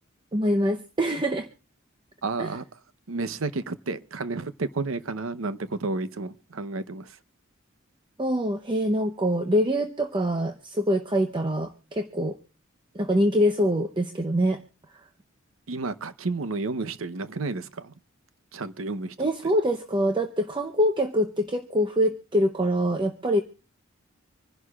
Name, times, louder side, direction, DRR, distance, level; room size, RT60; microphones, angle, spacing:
voice 1, 0.3-1.5 2.4-2.6 8.2-12.4 12.9-14.6 14.9-15.1 19.2-23.4, equal, 25° right, 0.7 m, -24 dB
voice 2, 2.2-2.6 3.1-7.1 15.7-17.9 18.5-19.1, right 3 dB, 90° right, 0.8 m, -31 dB
26.0 x 11.0 x 2.3 m
head